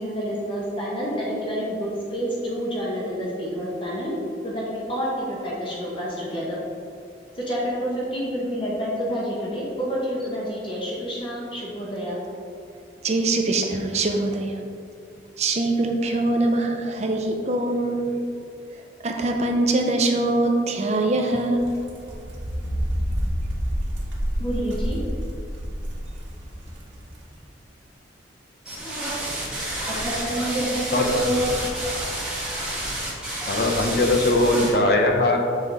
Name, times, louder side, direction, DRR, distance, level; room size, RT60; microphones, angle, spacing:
voice 1, 0.0-4.1 4.4-6.6 7.3-12.2 24.4-25.0 29.9-31.7, equal, 30° left, -5 dB, 0.9 m, -28 dB
voice 2, 13.0-14.6 15.4-18.2 19.0-21.8, right 2 dB, 35° right, 3 dB, 0.5 m, -23 dB
sound 1, 21.5-27.2, equal, 85° right, 1.2 m, -29 dB
sound 2, 28.7-34.7, right 1 dB, 5° right, 1.4 m, -29 dB
voice 3, 33.5-35.4, left 2 dB, 55° left, 3 dB, 0.7 m, -20 dB
6.5 x 3.7 x 4.0 m, 2.4 s
head